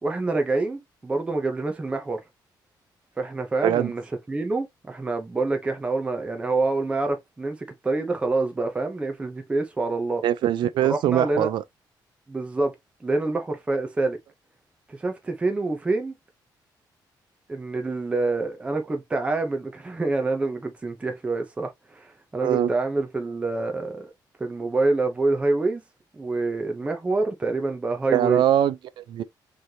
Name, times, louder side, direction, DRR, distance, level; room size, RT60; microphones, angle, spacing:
voice 1, 0.0-2.2 3.2-4.0 4.3-7.6 7.8-10.2 10.8-11.5 12.3-12.7 13.0-14.2 14.9-16.1 17.5-24.1 24.4-25.8 26.1-28.4, right 3 dB, 15° right, 0.8 m, -26 dB
voice 2, 3.6-3.9 10.2-11.6 22.4-22.7 28.1-29.2, right 11 dB, 70° right, 0.5 m, -22 dB
4.1 x 3.3 x 2.8 m
cardioid pair, 155°, 8 cm